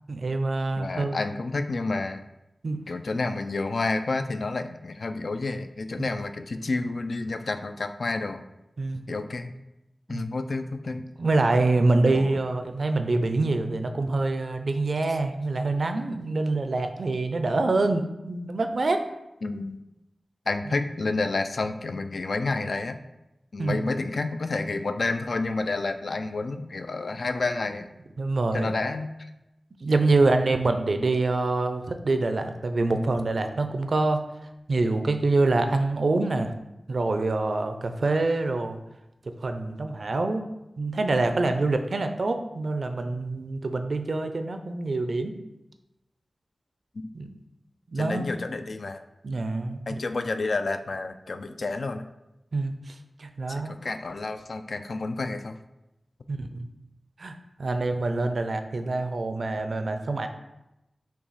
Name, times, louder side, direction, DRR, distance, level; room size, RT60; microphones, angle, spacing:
voice 1, 0.1-1.2 2.6-2.9 6.0-6.1 8.8-9.1 10.1-10.2 11.2-19.0 23.6-23.9 28.2-28.7 29.8-34.2 34.7-36.5 36.9-38.8 39.4-40.4 40.8-45.4 47.1-47.3 47.9-48.3 49.2-50.0 52.5-53.8 56.3-56.7 57.2-60.3, right 3 dB, 70° right, 7 dB, 0.4 m, -25 dB
voice 2, 0.8-2.2 2.9-8.4 9.1-9.5 10.1-11.0 12.1-12.4 15.1-15.2 19.4-19.8 20.5-23.0 23.5-27.9 28.5-29.3 46.9-47.1 48.0-49.0 49.9-52.0 53.5-55.6, left 3 dB, 75° left, 8 dB, 0.3 m, -30 dB
5.8 x 2.3 x 4.0 m, 0.93 s
wide cardioid pair, 65°, 0 cm